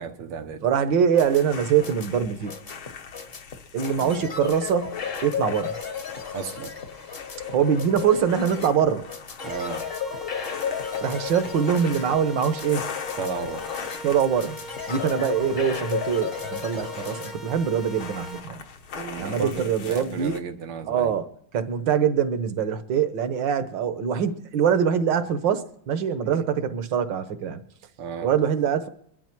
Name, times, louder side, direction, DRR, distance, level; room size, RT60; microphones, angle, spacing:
voice 1, 0.0-0.6 4.0-4.2 6.3-6.7 9.4-9.8 13.2-13.7 18.9-21.1 26.2-26.4 28.0-28.3, right 6 dB, 85° right, 2.2 m, -33 dB
voice 2, 0.6-2.5 3.7-5.8 7.5-9.1 11.0-12.8 14.0-14.6 14.9-18.6 19.2-20.4 20.9-21.3 21.5-27.6 28.2-28.9, right 8 dB, 65° right, 1.6 m, -23 dB
sound 1, 0.9-17.3, left 7 dB, 35° left, 1.1 m, -34 dB
sound 2, 1.2-20.4, left 6 dB, 70° left, 2.1 m, -42 dB
sound 3, 9.4-18.4, right 1 dB, ahead, 0.4 m, -41 dB
22.5 x 12.0 x 4.5 m
omnidirectional pair, 2.3 m